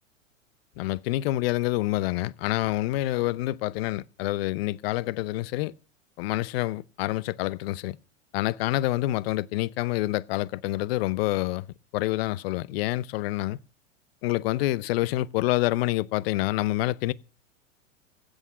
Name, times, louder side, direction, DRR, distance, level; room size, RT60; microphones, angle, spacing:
voice 1, 0.8-5.7 6.2-8.0 8.3-11.7 11.9-13.6 14.2-17.1, left 17 dB, 50° left, 0.7 m, -27 dB
15.5 x 6.4 x 8.4 m
figure-of-eight pair, 95°, 39 cm